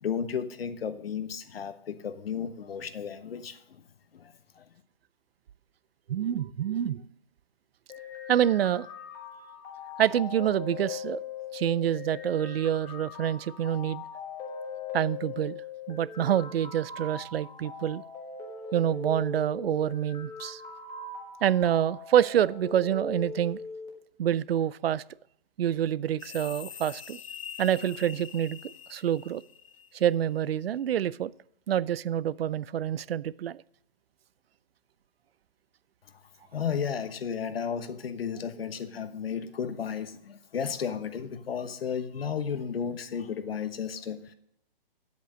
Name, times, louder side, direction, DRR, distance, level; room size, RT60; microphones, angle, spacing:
voice 1, 0.0-3.8 4.1-4.6 36.5-44.3, left 7 dB, 80° left, 1.1 m, -33 dB
voice 2, 6.1-7.1 8.3-8.9 10.0-11.2 11.5-14.0 14.9-15.6 15.9-18.0 18.7-20.6 21.4-23.6 24.2-25.0 25.6-27.2 27.6-28.6 28.9-29.4 29.9-31.3 31.7-33.6, right 10 dB, 85° right, 0.5 m, -27 dB
sound 1, 7.9-23.9, left 5 dB, 10° left, 1.3 m, -40 dB
sound 2, 26.2-30.4, left 9 dB, 35° left, 0.5 m, -44 dB
9.6 x 8.3 x 6.2 m
hypercardioid pair, 160°, 29 cm